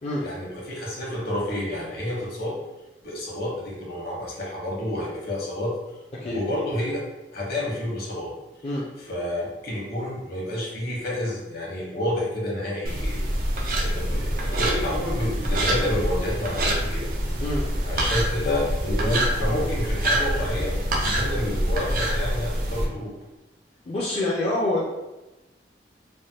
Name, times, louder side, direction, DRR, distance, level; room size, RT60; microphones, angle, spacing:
voice 1, 0.2-2.6 3.0-5.8 6.2-7.0 7.3-8.3 9.1-13.2 13.7-17.1 17.8-23.1, left 1 dB, 60° left, -4 dB, 1.0 m, -29 dB
sound 1, 12.9-22.9, right 1 dB, 55° right, 0.5 m, -25 dB
voice 2, 23.9-24.8, left 1 dB, 35° left, -6 dB, 0.4 m, -26 dB
3.2 x 2.1 x 2.7 m, 1.0 s
head